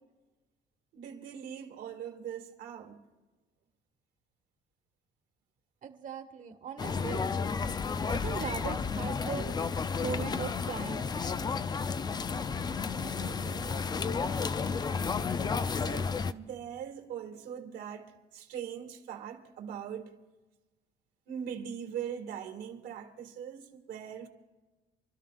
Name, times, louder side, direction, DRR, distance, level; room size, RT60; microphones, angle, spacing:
voice 1, 0.9-3.0 13.0-13.8 15.8-18.1 18.3-20.1 21.3-24.3, right 8 dB, 75° right, 2.3 m, -41 dB
voice 2, 5.8-7.2 8.1-9.6 9.9-11.1, right 6 dB, 50° right, 1.6 m, -39 dB
sound 1, 6.8-16.3, left 5 dB, 25° left, 0.4 m, -32 dB
28.5 x 13.0 x 2.5 m
cardioid pair, 110°, 17 cm